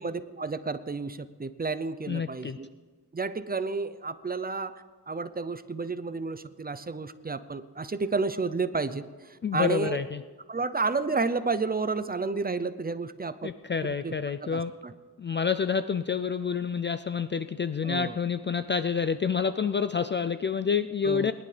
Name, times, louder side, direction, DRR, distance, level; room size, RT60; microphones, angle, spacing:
voice 1, 0.0-2.7 3.1-4.7 5.1-9.0 9.5-10.0 10.5-13.5 13.8-14.1 14.5-14.6 17.8-18.1 21.0-21.3, right 4 dB, 25° right, 13 dB, 0.6 m, -31 dB
voice 2, 2.1-2.6 9.4-10.2 13.4-14.7 15.2-21.3, left 6 dB, 30° left, 11 dB, 0.4 m, -28 dB
21.0 x 11.0 x 3.4 m, 1.4 s
cardioid pair, 85°, 41 cm